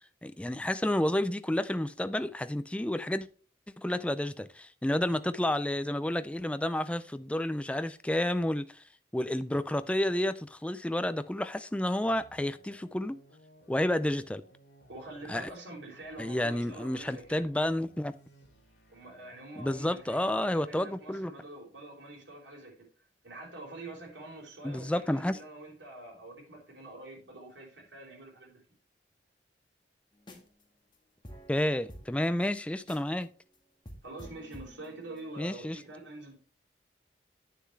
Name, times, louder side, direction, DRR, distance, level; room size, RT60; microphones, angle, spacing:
voice 1, 0.2-3.3 3.8-8.8 9.1-13.2 13.7-14.4 15.3-15.5 16.2-18.1 19.6-21.3 24.6-25.4 31.5-33.3 35.4-35.8, left 1 dB, 5° left, 0.3 m, -30 dB
sound 1, 12.0-20.3, equal, 80° left, 2.6 m, -59 dB
voice 2, 14.9-17.5 18.9-22.9 23.2-28.6 34.0-36.3, right 2 dB, 85° right, 3.5 m, -46 dB
sound 2, 30.2-30.6 30.9-31.0 31.2-33.2 33.5-33.6 33.8-35.3, equal, 25° left, 1.6 m, -49 dB
9.5 x 6.8 x 3.2 m
head